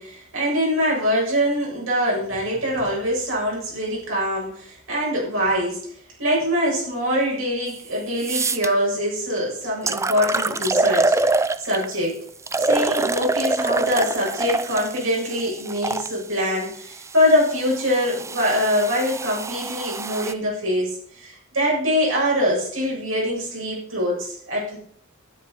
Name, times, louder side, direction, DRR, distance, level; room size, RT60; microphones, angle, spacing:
voice 1, 0.0-5.8 6.2-12.2 12.6-24.8, equal, 70° right, -3 dB, 7.5 m, -23 dB
sound 1, 7.7-7.8 8.2-8.7 9.4-9.5 9.9-11.9 12.5-16.1 16.9-20.3, right 3 dB, 15° right, 0.5 m, -25 dB
12.5 x 11.0 x 5.3 m, 0.62 s
head